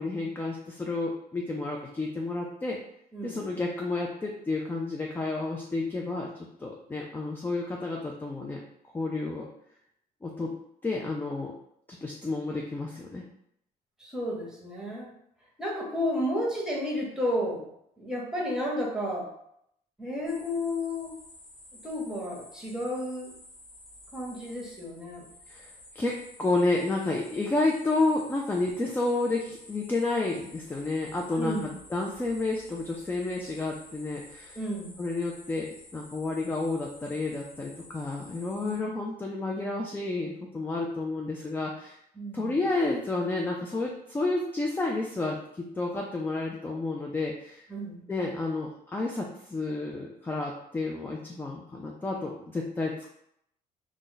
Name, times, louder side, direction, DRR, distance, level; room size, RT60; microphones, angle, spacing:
voice 1, 0.0-2.8 3.2-6.3 6.6-8.6 8.9-9.5 10.2-10.5 10.8-11.5 12.0-13.3 25.5-25.7 25.9-34.6 35.0-42.0 42.3-47.7 48.1-53.1, left 2 dB, 10° left, 0 dB, 0.3 m, -30 dB
voice 2, 3.1-3.4 14.0-15.1 15.6-17.6 18.0-19.3 20.0-21.1 21.8-23.3 24.1-25.2 31.3-31.7 34.5-35.0 38.6-38.8 42.1-42.6 47.7-48.0, left 1 dB, 5° right, -3 dB, 0.9 m, -32 dB
sound 1, 20.2-38.8, left 1 dB, 70° left, 1.2 m, -51 dB
2.4 x 2.1 x 3.8 m, 0.73 s
cardioid pair, 110°, 17 cm